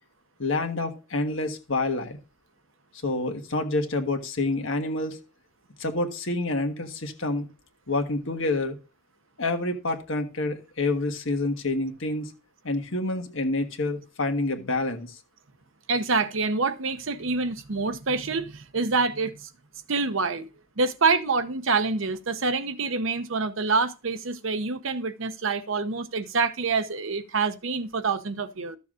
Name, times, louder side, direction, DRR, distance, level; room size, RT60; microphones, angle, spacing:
voice 1, 0.4-2.2 3.0-5.2 5.8-7.5 7.9-8.8 9.4-12.3 12.6-15.2, left 2 dB, 70° left, 1.5 m, -28 dB
voice 2, 15.9-19.5 19.9-20.5 20.8-28.8, right 4 dB, 70° right, 0.9 m, -26 dB
14.0 x 7.0 x 2.5 m
head